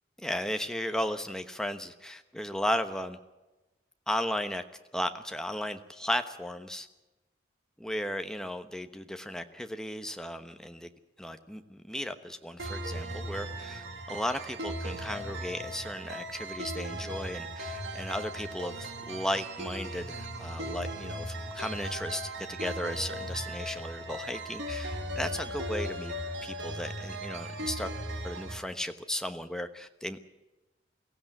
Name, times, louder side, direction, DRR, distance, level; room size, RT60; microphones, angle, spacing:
voice 1, 0.2-3.2 4.1-4.6 4.9-6.9 7.8-10.9 11.2-26.1 26.4-27.9 28.2-30.2, left 1 dB, 5° left, 7 dB, 1.1 m, -35 dB
sound 1, 12.6-28.6, right 1 dB, 75° right, 2.4 m, -37 dB
22.5 x 16.0 x 9.2 m, 1.1 s
head